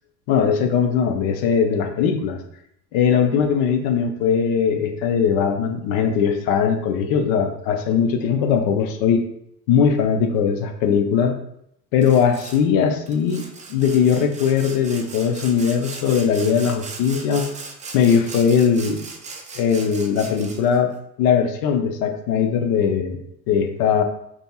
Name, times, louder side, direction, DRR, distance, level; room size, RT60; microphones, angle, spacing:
voice 1, 0.3-2.4 2.9-9.2 9.7-11.4 11.9-13.4 13.7-17.4 17.9-19.0 19.5-20.9 21.2-24.0, left 7 dB, 50° left, 6 dB, 0.7 m, -20 dB
Sawing, 12.0-12.6 13.1-20.8, right 4 dB, 15° right, 0.5 m, -38 dB
5.1 x 2.8 x 2.3 m, 0.74 s
hypercardioid pair, 80°, 45 cm